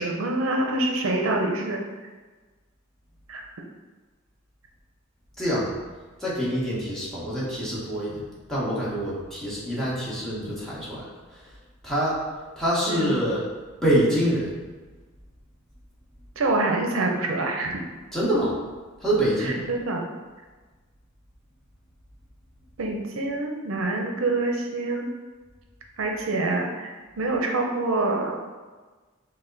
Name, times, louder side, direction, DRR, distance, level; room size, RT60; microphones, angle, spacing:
voice 1, 0.0-1.8 3.3-3.5 12.9-13.2 16.4-17.8 19.4-20.0 22.8-25.1 26.0-28.4, right 2 dB, 75° right, 2 dB, 0.6 m, -26 dB
voice 2, 5.4-5.7 6.2-11.0 11.8-12.2 12.6-13.4 13.8-14.5 18.1-18.5 19.0-19.6, equal, ahead, -8 dB, 1.2 m, -25 dB
6.3 x 2.2 x 3.8 m, 1.3 s
head